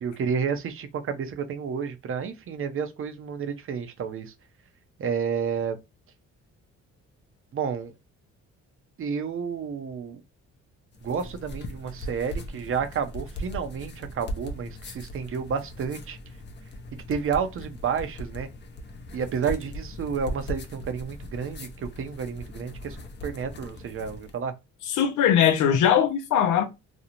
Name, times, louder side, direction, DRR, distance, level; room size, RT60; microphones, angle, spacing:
voice 1, 0.0-4.3 5.0-5.8 7.5-7.9 9.0-10.2 11.0-16.2 17.1-18.5 19.1-23.0 23.2-24.5, right 6 dB, 45° right, 0.6 m, -30 dB
sound 1, 10.9-24.4, equal, 35° left, 0.5 m, -39 dB
voice 2, 24.9-26.7, left 9 dB, 85° left, 0.6 m, -20 dB
2.5 x 2.0 x 2.8 m
cardioid pair, 90°, 30 cm